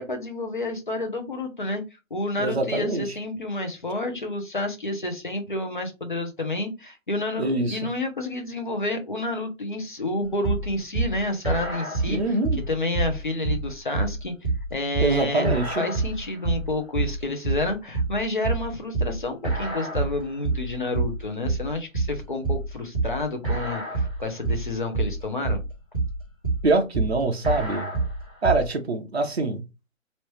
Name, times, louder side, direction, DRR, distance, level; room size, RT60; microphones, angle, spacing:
voice 1, 0.0-1.8 2.1-12.2 12.7-14.3 14.7-25.6, left 2 dB, 40° left, 0.7 m, -29 dB
voice 2, 2.4-3.1 7.4-7.8 12.1-12.6 15.0-15.8 26.6-27.9 28.4-29.7, right 2 dB, 50° right, 0.8 m, -24 dB
sound 1, 10.4-28.7, right 3 dB, 5° left, 1.1 m, -27 dB
3.1 x 2.8 x 3.1 m
hypercardioid pair, 180°, 40 cm